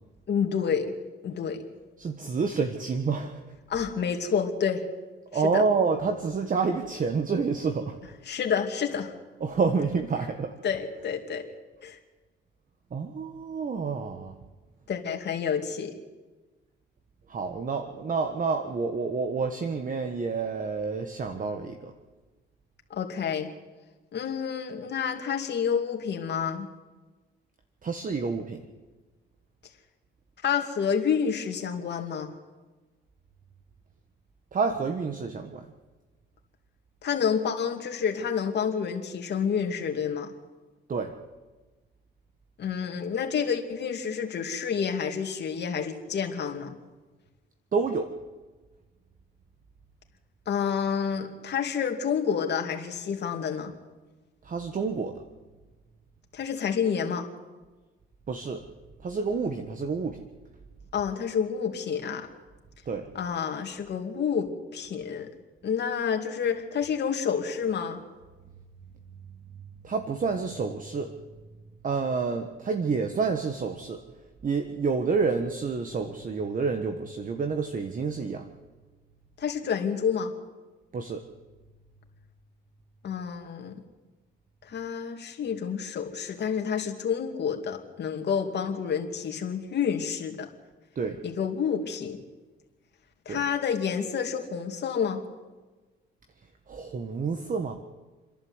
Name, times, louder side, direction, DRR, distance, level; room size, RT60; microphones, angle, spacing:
voice 1, 0.3-0.9 1.2-1.6 3.7-4.8 5.3-5.6 8.3-9.1 10.6-11.4 11.8-12.0 14.9-16.0 22.9-23.5 24.1-26.7 30.4-32.3 37.0-40.3 42.6-46.7 50.5-53.7 56.3-57.3 60.9-62.3 63.1-65.3 65.6-68.0 79.4-80.3 83.0-83.8 84.6-90.5 91.2-92.2 93.3-95.2, left 7 dB, 60° left, 3 dB, 2.7 m, -29 dB
voice 2, 2.0-3.4 5.3-8.0 9.4-10.6 12.9-14.4 17.3-21.9 27.8-28.6 34.5-35.7 40.9-41.1 47.7-48.1 54.4-55.2 58.3-58.7 59.0-60.2 62.9-63.1 69.8-71.1 71.8-74.0 74.4-78.5 80.9-81.3 90.9-91.2 93.3-93.4 96.7-97.8, right 4 dB, 40° right, 7 dB, 1.4 m, -28 dB
29.0 x 11.0 x 8.1 m, 1.3 s
cardioid pair, 90°, 20 cm